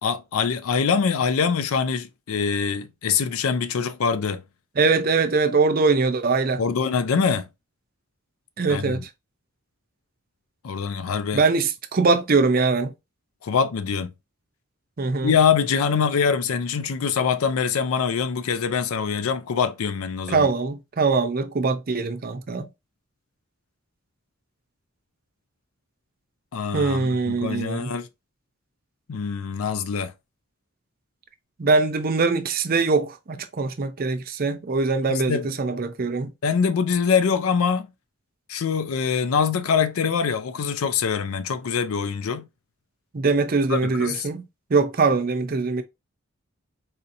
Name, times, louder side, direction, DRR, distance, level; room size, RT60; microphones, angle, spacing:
voice 1, 0.0-4.4 6.6-7.5 8.7-9.0 10.6-11.4 13.4-14.1 15.2-20.5 26.5-28.1 29.1-30.1 35.1-35.5 36.4-37.9 38.5-42.5 43.7-44.3, left 6 dB, 85° left, 0.4 m, -24 dB
voice 2, 4.8-6.6 8.6-9.1 11.3-12.9 15.0-15.3 20.3-22.7 26.7-27.9 31.6-36.3 43.1-44.4 44.7-45.8, right 4 dB, 45° right, 0.5 m, -22 dB
4.2 x 2.7 x 2.6 m
head